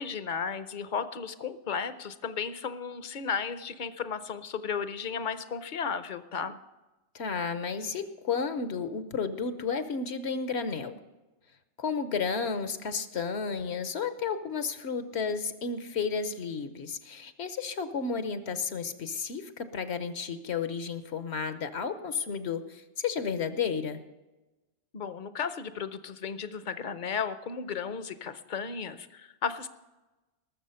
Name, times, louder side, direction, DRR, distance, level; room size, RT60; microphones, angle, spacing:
voice 1, 0.0-6.6 24.9-29.7, left 6 dB, 50° left, 13 dB, 0.8 m, -34 dB
voice 2, 7.1-11.0 11.8-24.0, left 5 dB, 70° left, 11 dB, 1.1 m, -32 dB
19.5 x 7.1 x 5.6 m, 1.1 s
omnidirectional pair, 1.2 m